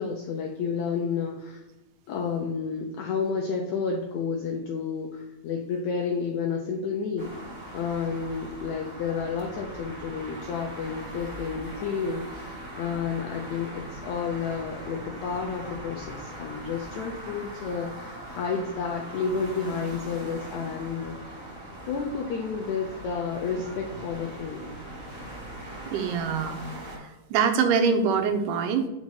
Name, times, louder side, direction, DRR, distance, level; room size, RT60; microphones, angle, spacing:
voice 1, 0.0-1.6 2.1-7.4 7.7-21.4 21.9-24.6, left 5 dB, 80° left, 0 dB, 1.7 m, -31 dB
sound 1, 7.2-27.0, right 1 dB, 25° right, 2.3 m, -41 dB
voice 2, 25.9-28.9, right 6 dB, 75° right, 6 dB, 2.1 m, -25 dB
5.2 x 4.8 x 5.7 m, 1.0 s
omnidirectional pair, 4.1 m